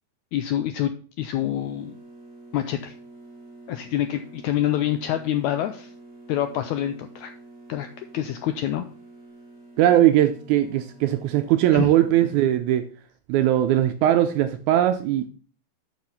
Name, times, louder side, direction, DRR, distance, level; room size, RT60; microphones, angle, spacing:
voice 1, 0.3-0.9 1.2-2.0 2.5-2.9 3.7-5.9 6.3-7.3 7.7-8.9 11.7-11.9, left 12 dB, 85° left, 1.6 m, -26 dB
sound 1, 1.3-12.4, right 2 dB, 20° left, 3.8 m, -47 dB
voice 2, 9.8-12.9 13.3-15.3, right 12 dB, 80° right, 1.8 m, -20 dB
6.6 x 6.1 x 5.4 m
omnidirectional pair, 3.8 m